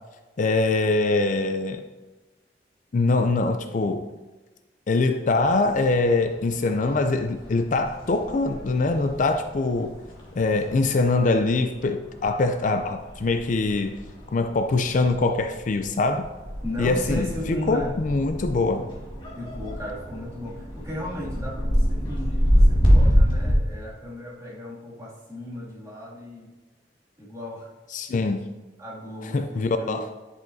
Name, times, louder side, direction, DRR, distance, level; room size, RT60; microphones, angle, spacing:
voice 1, 0.4-1.8 2.9-4.1 4.9-10.0 10.4-14.0 14.3-16.3 16.8-18.9 27.9-28.5 29.2-30.1, left 3 dB, 45° left, 8 dB, 0.4 m, -23 dB
sound 1, 5.2-23.5, equal, 30° left, 1.7 m, -27 dB
voice 2, 16.6-17.9 19.4-26.5 27.2-27.7 28.8-30.0, left 1 dB, 20° right, -7 dB, 2.3 m, -36 dB
10.5 x 5.6 x 2.7 m, 1.2 s
head